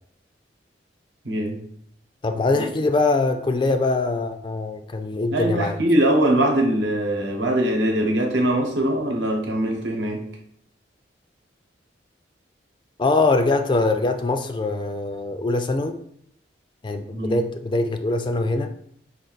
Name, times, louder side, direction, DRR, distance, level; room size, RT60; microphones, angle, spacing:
voice 1, 1.2-1.7 2.6-2.7 5.3-10.2 17.1-17.4, right 1 dB, 85° right, 1 dB, 1.0 m, -22 dB
voice 2, 2.2-5.8 13.0-16.0 16.8-18.7, left 3 dB, 25° left, 7 dB, 0.3 m, -23 dB
5.1 x 2.5 x 4.0 m, 0.67 s
head